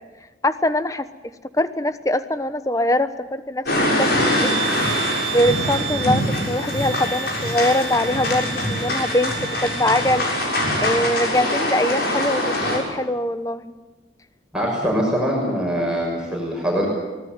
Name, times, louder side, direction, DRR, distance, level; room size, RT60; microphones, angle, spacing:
voice 1, 0.4-1.1 1.5-9.4 9.6-10.5 10.8-13.8, left 1 dB, 20° left, 12 dB, 1.0 m, -23 dB
sound 1, 3.7-12.8, left 1 dB, 55° left, 6.8 m, -23 dB
sound 2, 4.0-10.4, right 7 dB, 35° right, 2.3 m, -32 dB
voice 2, 14.5-16.9, equal, 5° right, -2 dB, 6.2 m, -23 dB
24.5 x 18.5 x 9.0 m, 1.2 s
head